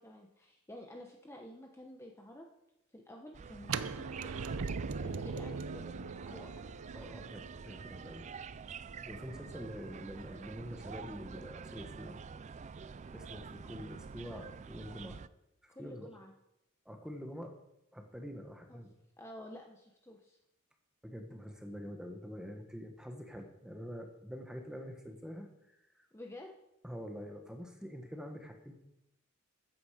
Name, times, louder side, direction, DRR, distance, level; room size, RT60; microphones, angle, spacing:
voice 1, 0.0-2.5 2.9-4.4 5.0-6.7 15.7-16.3 18.7-18.8 19.2-20.4 26.1-26.5, left 1 dB, 15° left, 1 dB, 1.0 m, -51 dB
sound 1, 3.3-15.3, right 5 dB, 35° right, 0.3 m, -47 dB
sound 2, 3.6-9.5, right 5 dB, 90° right, 0.6 m, -41 dB
voice 2, 5.1-5.4 6.2-6.7 6.9-8.3 9.0-12.2 13.1-15.2 15.6-16.2 16.8-17.6 17.9-18.9 21.0-26.1 26.8-28.7, equal, 5° right, 4 dB, 1.4 m, -46 dB
14.0 x 9.3 x 5.0 m, 0.88 s
head